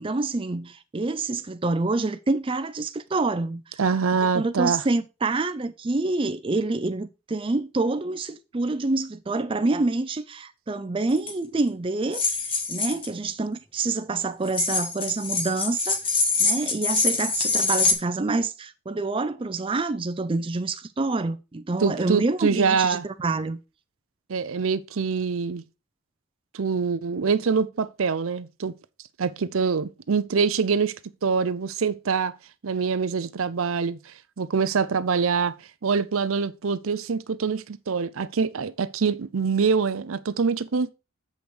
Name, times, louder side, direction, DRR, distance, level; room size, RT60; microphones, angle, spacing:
voice 1, 0.0-3.8 4.2-16.0 16.4-23.6, right 3 dB, 25° right, 0.4 m, -27 dB
voice 2, 3.8-4.8 21.8-23.0 24.3-25.6 26.5-28.7 29.2-30.9 31.2-32.3 32.6-35.5 35.8-40.9, right 5 dB, 75° right, 0.6 m, -24 dB
sound 1, 11.2-11.3 12.1-13.1 14.5-17.9, left 4 dB, 25° left, 1.4 m, -24 dB
7.7 x 5.3 x 4.7 m
head